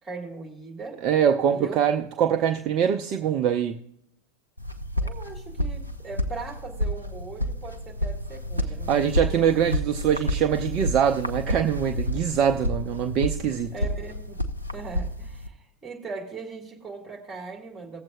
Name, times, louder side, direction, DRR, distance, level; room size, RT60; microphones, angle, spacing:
voice 1, 0.0-1.0 1.5-1.8 5.0-9.6 13.7-14.4 14.7-18.0, right 4 dB, 10° right, 2.2 m, -39 dB
voice 2, 1.0-3.8 8.9-13.7, right 8 dB, 35° right, 0.5 m, -23 dB
sound 1, 4.6-15.5, equal, 90° left, 0.7 m, -30 dB
18.0 x 7.5 x 2.5 m
figure-of-eight pair, 90°, 0 cm